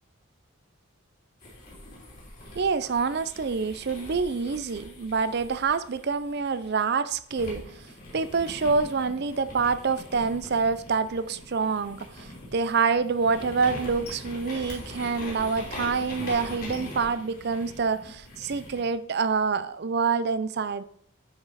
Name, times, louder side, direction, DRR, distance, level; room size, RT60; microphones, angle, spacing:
sound 1, 1.4-6.8 7.3-18.9, left 1 dB, 45° left, 3.1 m, -42 dB
voice 1, 2.5-7.9 8.1-20.8, right 5 dB, 50° right, 14 dB, 0.5 m, -27 dB
9.5 x 5.3 x 4.1 m, 0.63 s
head